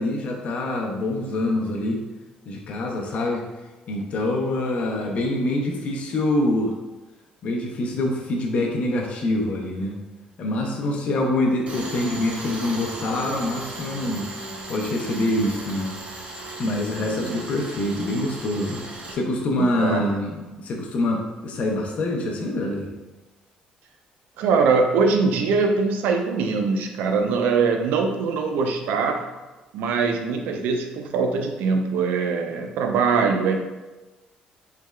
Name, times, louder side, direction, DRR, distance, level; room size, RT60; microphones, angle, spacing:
voice 1, 0.0-2.0 2.5-3.4 3.9-6.8 7.4-10.0 10.4-14.3 14.7-15.9 16.6-18.8 19.1-22.9, left 1 dB, 55° left, 0 dB, 0.5 m, -25 dB
Tools, 11.7-19.2, right 2 dB, 40° right, 0.6 m, -36 dB
voice 2, 17.0-17.4 19.6-20.0 24.4-29.2 29.7-33.6, right 4 dB, 90° right, 4 dB, 0.4 m, -22 dB
3.3 x 3.1 x 2.2 m, 1.1 s
cardioid pair, 115°, 3 cm